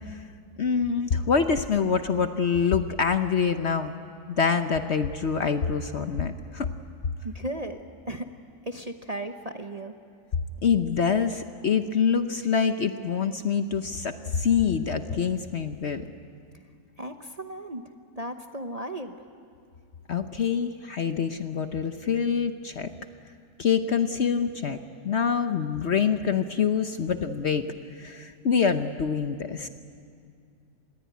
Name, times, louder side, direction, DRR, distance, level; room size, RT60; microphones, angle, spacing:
voice 1, 0.6-3.9 4.3-6.7 10.6-16.0 20.1-22.9 23.6-24.8 25.0-27.6 27.9-29.7, left 6 dB, 50° left, 9 dB, 0.9 m, -25 dB
voice 2, 7.2-7.8 8.1-8.3 8.6-9.9 17.0-17.8 18.1-19.2, right 1 dB, 30° right, 5 dB, 0.8 m, -35 dB
26.5 x 20.5 x 9.3 m, 2.3 s
omnidirectional pair, 1.7 m